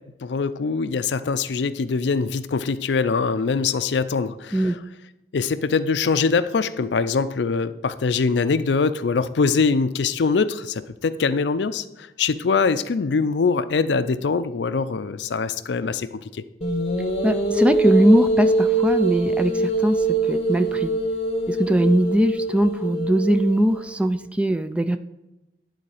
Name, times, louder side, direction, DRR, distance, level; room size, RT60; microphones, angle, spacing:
voice 1, 0.2-4.8 5.3-16.4, left 4 dB, 75° left, 13 dB, 0.5 m, -23 dB
sound 1, 16.6-24.0, right 2 dB, 35° left, 0.9 m, -23 dB
voice 2, 17.2-20.9 21.5-25.0, equal, 5° right, 10 dB, 0.3 m, -20 dB
11.0 x 4.0 x 4.8 m, 0.97 s
head